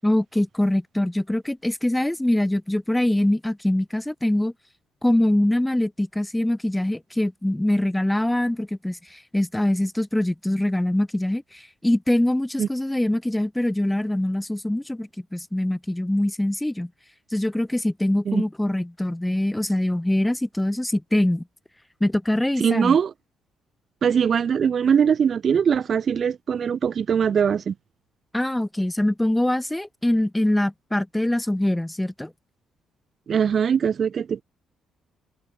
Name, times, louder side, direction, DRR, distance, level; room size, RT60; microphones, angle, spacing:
voice 1, 0.0-4.5 5.0-16.9 17.3-21.4 22.0-23.0 28.3-32.3, left 1 dB, 10° left, 7.2 m, -23 dB
voice 2, 22.6-23.1 24.0-27.7 33.3-34.4, right 7 dB, 55° right, 3.8 m, -21 dB
supercardioid pair, 75°, 0 cm